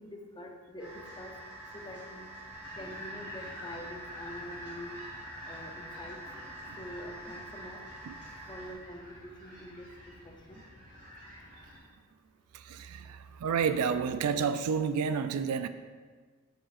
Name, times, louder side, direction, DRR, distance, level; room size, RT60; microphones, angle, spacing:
voice 1, 0.0-1.3 1.7-2.3 2.8-5.0 5.4-6.2 6.8-7.8 8.5-9.9 10.2-10.6, left 1 dB, 20° left, 2 dB, 0.6 m, -45 dB
sound 1, 0.8-8.7, right 1 dB, 5° right, 1.4 m, -47 dB
sound 2, 2.5-11.8, equal, 40° right, 1.8 m, -48 dB
voice 2, 12.5-15.7, right 6 dB, 90° right, 11 dB, 0.4 m, -30 dB
6.7 x 6.2 x 2.5 m, 1.5 s
head